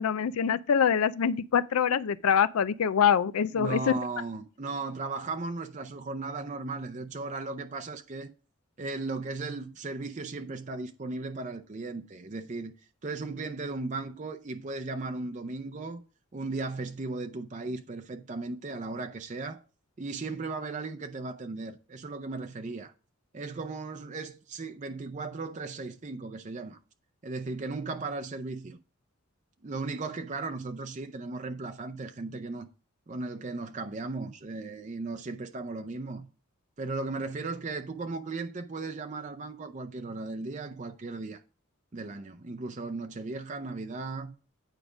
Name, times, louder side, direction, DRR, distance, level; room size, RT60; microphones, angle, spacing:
voice 1, 0.0-4.0, left 7 dB, 85° left, 0.4 m, -25 dB
voice 2, 3.5-8.3 8.8-12.7 13.0-16.0 16.3-19.6 20.0-22.9 23.3-26.8 27.2-28.8 29.6-32.7 33.1-36.3 36.8-41.4 41.9-44.3, right 3 dB, 35° right, 0.5 m, -36 dB
9.1 x 5.0 x 4.9 m
head